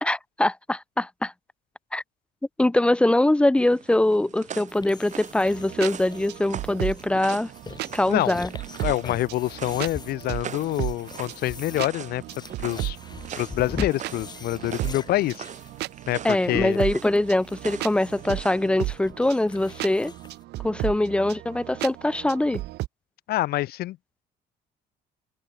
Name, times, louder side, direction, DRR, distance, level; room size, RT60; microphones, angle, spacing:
voice 1, 0.0-1.3 1.9-2.0 2.6-7.5 7.9-8.5 16.2-20.1 20.6-22.6, left 1 dB, 5° left, 0.3 m, -23 dB
sound 1, 3.6-18.7, right 8 dB, 45° right, 1.8 m, -42 dB
sound 2, 4.7-20.4, left 4 dB, 25° left, 3.6 m, -42 dB
sound 3, 5.5-22.9, right 17 dB, 80° right, 2.0 m, -35 dB
voice 2, 8.1-8.4 8.8-12.2 12.6-13.0 13.4-15.4 16.1-16.8 23.3-24.0, left 16 dB, 70° left, 0.6 m, -26 dB
cardioid pair, 110°, 17 cm